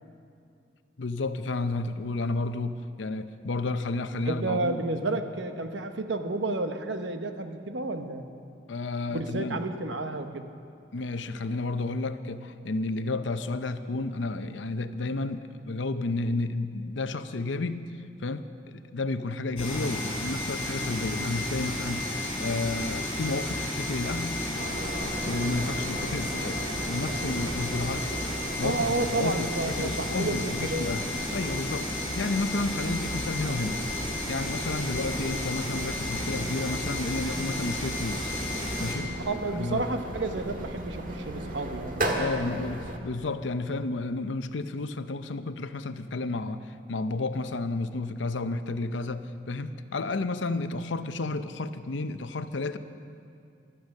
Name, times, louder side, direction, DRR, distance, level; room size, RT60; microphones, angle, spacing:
voice 1, 1.0-4.8 8.7-9.6 10.9-17.9 18.2-22.1 22.4-24.4 25.3-28.2 28.6-31.0 31.3-38.4 38.8-39.1 39.6-39.9 42.2-52.8, left 3 dB, 80° left, 11 dB, 0.7 m, -31 dB
voice 2, 4.3-8.3 9.1-10.5 28.6-31.0 39.2-42.2, right 2 dB, 75° right, 7 dB, 1.0 m, -31 dB
sound 1, 19.6-39.0, left 1 dB, 30° left, 4.6 m, -32 dB
sound 2, 24.6-43.0, right 1 dB, 50° right, 1.6 m, -37 dB
15.5 x 12.5 x 6.5 m, 2.4 s
head